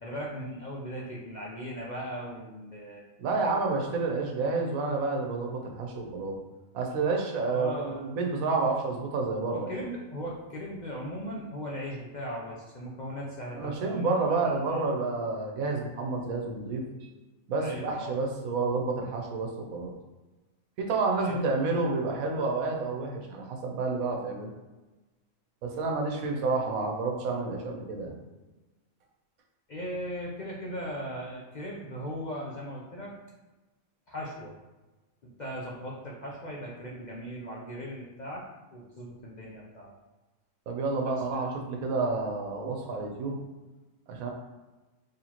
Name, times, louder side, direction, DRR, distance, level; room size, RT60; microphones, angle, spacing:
voice 1, 0.0-3.0 7.5-8.0 9.5-14.9 17.6-18.1 21.2-21.3 29.7-33.1 34.1-34.5 35.4-38.4 38.7-39.9 41.3-41.4, equal, 50° left, -4 dB, 0.5 m, -38 dB
voice 2, 3.2-6.4 6.7-9.7 13.6-17.1 17.5-19.9 20.8-24.5 25.6-28.1 40.7-43.4 44.1-44.3, right 3 dB, 90° right, 1 dB, 1.2 m, -29 dB
4.2 x 3.1 x 2.9 m, 1.1 s
omnidirectional pair, 1.4 m